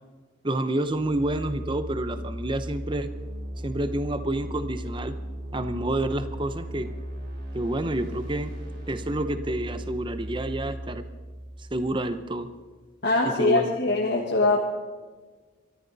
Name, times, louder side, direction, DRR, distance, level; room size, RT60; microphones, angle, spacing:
voice 1, 0.4-3.1 3.6-5.2 5.5-6.9 7.5-8.5 8.9-11.0 11.7-12.5 13.4-13.7, right 1 dB, 25° right, 10 dB, 0.7 m, -28 dB
sound 1, 0.8-12.6, equal, 60° right, 4.0 m, -37 dB
voice 2, 13.0-14.6, left 2 dB, 55° left, -2 dB, 1.6 m, -22 dB
24.0 x 13.5 x 4.1 m, 1.4 s
head